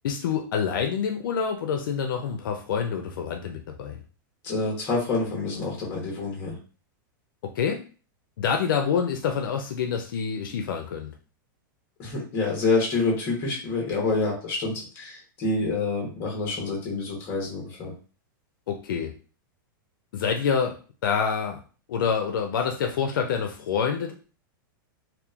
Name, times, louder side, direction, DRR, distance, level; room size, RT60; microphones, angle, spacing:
voice 1, 0.0-4.0 7.5-7.8 8.4-11.1 18.7-19.1 20.1-20.8 21.0-21.6 21.9-24.1, left 6 dB, 70° left, 4 dB, 0.4 m, -27 dB
voice 2, 4.4-6.6 12.0-17.9, left 3 dB, 20° left, -2 dB, 1.0 m, -27 dB
2.9 x 2.2 x 2.4 m, 0.37 s
supercardioid pair, 175°, 11 cm